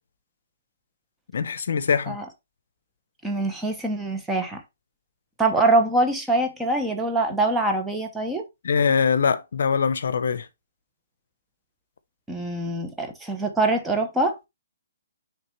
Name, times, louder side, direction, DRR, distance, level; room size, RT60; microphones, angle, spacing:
voice 1, 1.3-2.2 8.6-10.5, left 6 dB, 65° left, 0.7 m, -22 dB
voice 2, 3.2-4.6 5.4-8.4 12.3-14.4, right 2 dB, 5° right, 0.8 m, -24 dB
8.9 x 3.3 x 3.1 m
hypercardioid pair, 165°, 0 cm